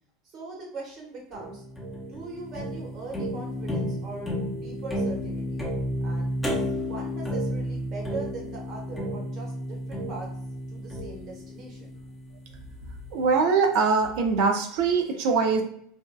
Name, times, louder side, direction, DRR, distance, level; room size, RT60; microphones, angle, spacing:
voice 1, 0.2-1.6 2.1-5.6 6.0-10.3 10.7-11.9, right 3 dB, 50° right, -1 dB, 1.0 m, -41 dB
sound 1, 1.3-12.5, equal, 5° left, 0.8 m, -32 dB
voice 2, 13.1-15.6, right 5 dB, 65° right, 4 dB, 0.5 m, -22 dB
2.6 x 2.2 x 2.2 m, 0.65 s
hypercardioid pair, 95°, 0 cm